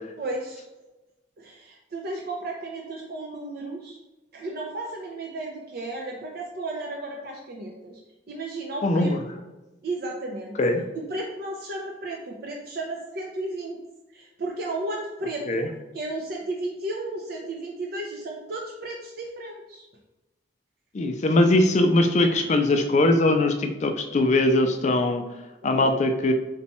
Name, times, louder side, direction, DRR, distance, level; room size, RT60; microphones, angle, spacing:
voice 1, 0.2-0.6 1.4-4.0 4.3-8.0 8.3-9.4 9.8-10.6 10.9-13.8 14.1-15.7 15.9-19.8 22.3-22.4 25.6-25.9, right 2 dB, 55° right, 0 dB, 0.5 m, -34 dB
voice 2, 8.8-9.2 10.6-10.8 15.5-15.7 20.9-25.2 25.6-26.3, left 2 dB, 40° left, 6 dB, 0.4 m, -21 dB
4.0 x 2.2 x 4.1 m, 1.1 s
head